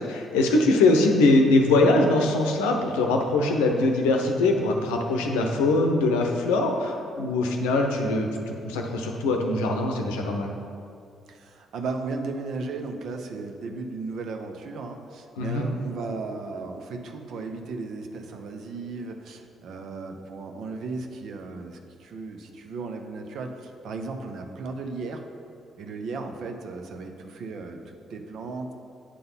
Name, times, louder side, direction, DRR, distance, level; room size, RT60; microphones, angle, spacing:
voice 1, 0.0-10.5 15.4-15.7, left 2 dB, 80° left, 3 dB, 0.7 m, -22 dB
voice 2, 11.3-25.2 25.8-28.7, right 3 dB, 65° right, 4 dB, 0.7 m, -35 dB
8.4 x 3.9 x 5.5 m, 2.4 s
hypercardioid pair, 45°, 0 cm